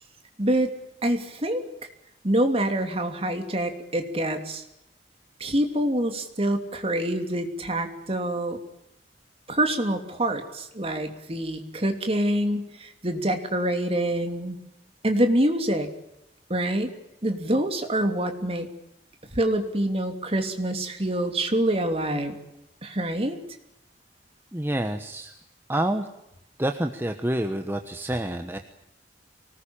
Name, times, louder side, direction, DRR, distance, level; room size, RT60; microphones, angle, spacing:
voice 1, 0.4-0.7 1.0-1.6 2.2-4.6 5.4-8.6 9.5-14.6 15.0-15.9 16.5-16.9 17.2-18.7 19.3-22.4 22.8-23.4, right 1 dB, 35° right, 6 dB, 3.0 m, -26 dB
voice 2, 24.5-25.3 25.7-26.1 26.6-28.6, right 1 dB, 15° right, 5 dB, 1.2 m, -28 dB
24.5 x 19.5 x 8.8 m, 0.85 s
head